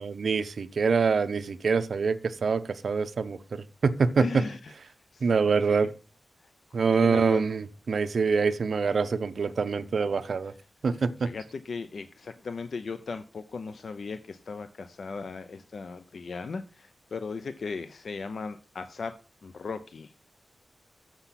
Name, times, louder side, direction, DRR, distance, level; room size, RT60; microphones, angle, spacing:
voice 1, 0.0-4.4 5.2-5.9 6.7-10.5 10.8-11.3, right 5 dB, 70° right, 10 dB, 0.7 m, -25 dB
voice 2, 4.2-4.7 5.1-5.8 6.9-7.4 11.2-19.2 19.4-20.1, left 4 dB, 70° left, 10 dB, 0.6 m, -37 dB
6.9 x 5.9 x 5.8 m, 0.35 s
wide cardioid pair, 85°, 0 cm